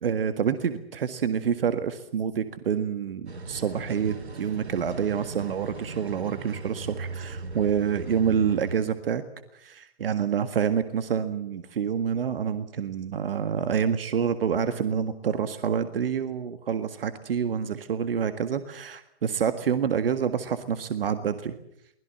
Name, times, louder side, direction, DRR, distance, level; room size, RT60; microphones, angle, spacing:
voice 1, 0.0-9.2 9.5-21.6, right 7 dB, 60° right, 10 dB, 1.8 m, -27 dB
sound 1, 3.3-8.8, right 3 dB, 75° right, 3.4 m, -38 dB
24.0 x 20.5 x 7.7 m, 0.75 s
figure-of-eight pair, 125°, 33 cm